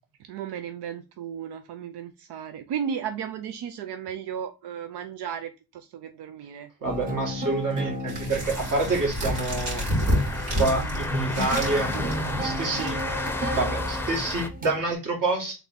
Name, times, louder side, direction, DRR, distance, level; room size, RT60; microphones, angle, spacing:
voice 1, 0.3-6.7, right 8 dB, 90° right, 0.6 m, -34 dB
sound 1, 6.8-14.9, equal, 20° right, 1.0 m, -34 dB
voice 2, 6.8-9.8 10.5-11.9 12.4-13.0 13.5-15.7, right 3 dB, 55° right, 2.1 m, -27 dB
sound 2, 8.1-13.4, equal, 75° right, 2.7 m, -30 dB
sound 3, 8.4-14.5, left 2 dB, 5° left, 0.6 m, -32 dB
3.8 x 3.5 x 4.1 m
cardioid pair, 115°, 39 cm